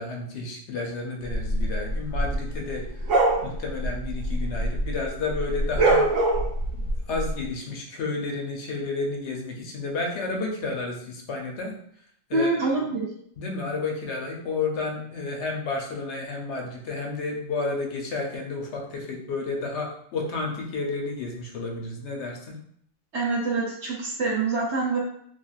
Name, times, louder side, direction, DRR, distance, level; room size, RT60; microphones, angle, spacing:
voice 1, 0.0-3.2 3.4-6.0 6.7-11.7 12.3-12.8 13.4-22.6, left 3 dB, 70° left, 1 dB, 0.9 m, -31 dB
sound 1, 1.3-5.0 5.3-7.3, right 2 dB, 85° right, 1.1 m, -24 dB
voice 2, 12.3-13.1 23.1-25.0, right 3 dB, 70° right, -3 dB, 0.9 m, -25 dB
3.1 x 2.3 x 2.3 m, 0.67 s
omnidirectional pair, 1.3 m